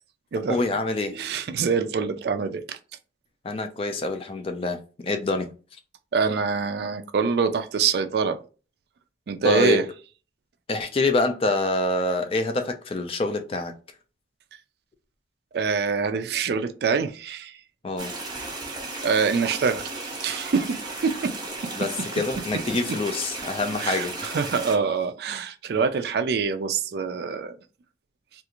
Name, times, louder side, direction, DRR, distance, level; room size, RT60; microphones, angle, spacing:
voice 1, 0.5-1.1 3.4-5.5 9.4-9.8 10.7-13.7 17.8-18.1 21.8-24.3, left 2 dB, 30° left, 0.4 m, -26 dB
voice 2, 1.1-2.8 6.1-8.4 9.3-9.8 15.5-17.5 19.0-21.3 22.5-22.6 23.8-27.5, right 5 dB, 60° right, 0.3 m, -25 dB
sound 1, 18.0-24.7, right 2 dB, 25° right, 0.7 m, -35 dB
2.4 x 2.4 x 2.8 m
head